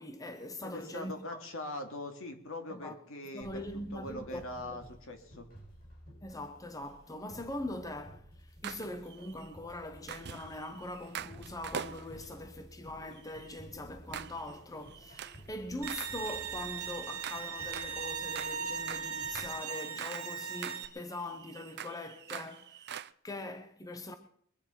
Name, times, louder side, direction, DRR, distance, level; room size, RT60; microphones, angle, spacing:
voice 1, 0.0-1.4 2.7-2.9 3.3-4.4 4.7-4.8 6.2-23.0 23.2-24.2, left 1 dB, 15° left, 0.9 m, -42 dB
voice 2, 0.6-3.6 3.9-5.5, left 1 dB, 65° left, 2.5 m, -42 dB
sound 1, 3.4-19.5, equal, 45° left, 7.1 m, -54 dB
sound 2, 8.6-9.5 10.1-12.4 13.1-13.6 14.1-14.6 14.9-15.5 15.9-20.4 20.6-23.1, right 9 dB, 50° right, 0.6 m, -45 dB
Bowed string instrument, 15.8-20.9, right 6 dB, 85° right, 1.8 m, -38 dB
22.5 x 9.3 x 5.7 m
head